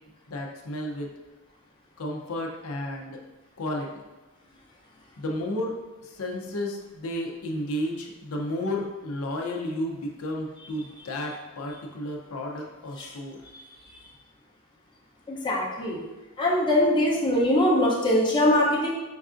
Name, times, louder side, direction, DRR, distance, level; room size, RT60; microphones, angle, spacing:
voice 1, 0.3-1.1 2.0-3.2 3.6-4.0 5.2-5.8 6.0-13.4, left 1 dB, 80° left, 1 dB, 0.5 m, -32 dB
voice 2, 15.3-16.0 16.4-18.9, left 1 dB, 20° left, -5 dB, 0.6 m, -22 dB
5.3 x 2.5 x 2.4 m, 1.1 s
head